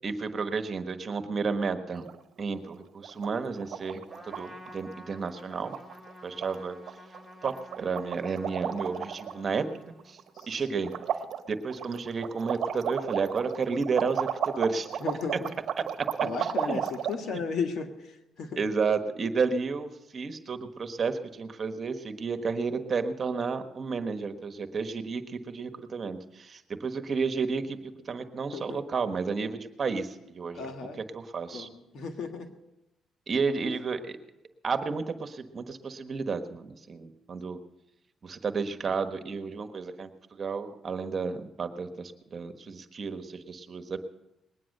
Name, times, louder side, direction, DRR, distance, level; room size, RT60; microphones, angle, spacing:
voice 1, 0.0-2.0 2.4-5.7 6.2-6.8 7.4-9.6 10.0-10.2 10.5-10.9 11.5-14.9 16.7-16.8 18.6-30.7 31.1-31.7 33.3-34.2 34.6-37.6 38.2-44.0, right 5 dB, 45° right, 8 dB, 1.3 m, -32 dB
sound 1, 1.9-2.4 2.7-2.8 3.0-3.3 3.6-4.4 4.7-4.9 5.2-5.3 5.6-6.1 6.4-6.6 6.9-7.2 7.4-9.4 9.8-10.5 10.8-17.2, right 9 dB, 65° right, 1.0 m, -33 dB
Trumpet, 4.1-10.3, equal, 10° left, 2.3 m, -50 dB
voice 2, 10.3-10.9 15.0-15.5 16.2-18.6 28.5-28.8 30.5-31.0 31.5-32.5, left 5 dB, 65° left, 6 dB, 1.6 m, -35 dB
20.5 x 9.5 x 6.6 m, 0.93 s
cardioid pair, 90°, 0 cm